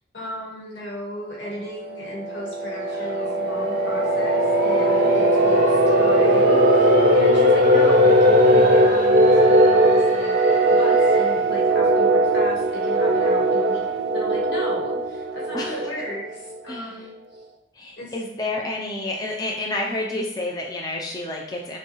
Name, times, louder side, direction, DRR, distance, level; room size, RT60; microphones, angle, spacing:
voice 1, 0.1-10.3 10.7-13.8 14.1-17.1 18.0-18.1, left 1 dB, 85° left, -3 dB, 1.5 m, -35 dB
sound 1, 1.8-16.4, right 1 dB, 80° right, 0.5 m, -18 dB
sound 2, 2.7-11.5, left 1 dB, 45° left, 0.9 m, -35 dB
voice 2, 4.7-5.2 15.5-15.9 16.7-17.0 17.7-21.8, left 2 dB, 20° left, -1 dB, 0.5 m, -30 dB
6.7 x 2.3 x 3.0 m, 0.79 s
head